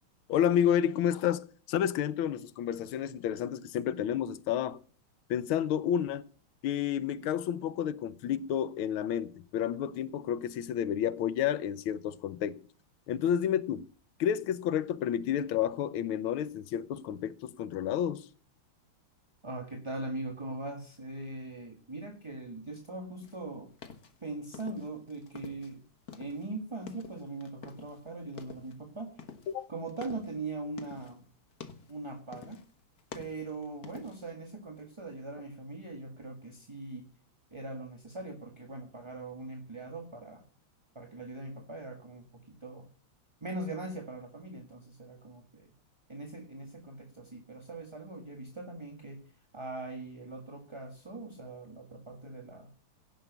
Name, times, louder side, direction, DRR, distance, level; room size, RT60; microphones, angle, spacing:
voice 1, 0.3-4.8 5.3-6.3 6.6-12.6 13.1-13.9 14.2-18.3 29.5-29.7, left 9 dB, 75° left, 1.6 m, -30 dB
voice 2, 19.4-23.7 24.2-25.8 26.2-29.2 29.7-31.3 31.9-32.6 33.1-37.1 37.5-40.4 40.9-42.9 43.4-45.7 46.1-49.2 49.5-52.7, right 2 dB, 15° right, 1.2 m, -41 dB
sound 1, 23.2-25.8 26.0-28.0 28.3-28.8 29.2-31.2 31.5-32.0 32.3-32.7 33.0-34.3, left 6 dB, 50° left, 1.7 m, -48 dB
17.0 x 6.1 x 8.0 m
omnidirectional pair, 2.4 m